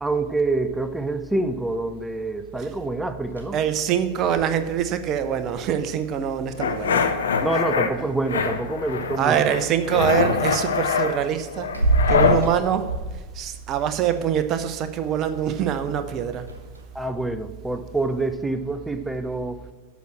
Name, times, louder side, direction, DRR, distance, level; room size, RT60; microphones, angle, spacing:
voice 1, 0.0-3.6 7.4-9.5 9.9-10.1 16.9-19.6, right 2 dB, 5° right, 0.5 m, -26 dB
sound 1, 1.9-18.6, right 2 dB, 75° right, 1.5 m, -33 dB
voice 2, 3.5-7.0 8.0-8.6 9.2-11.7 12.1-16.5, right 9 dB, 35° right, 0.8 m, -24 dB
sound 2, 6.6-7.9 8.3-9.2 9.5-12.4, left 6 dB, 65° left, 0.7 m, -23 dB
8.4 x 6.1 x 7.5 m
figure-of-eight pair, 90°, 0 cm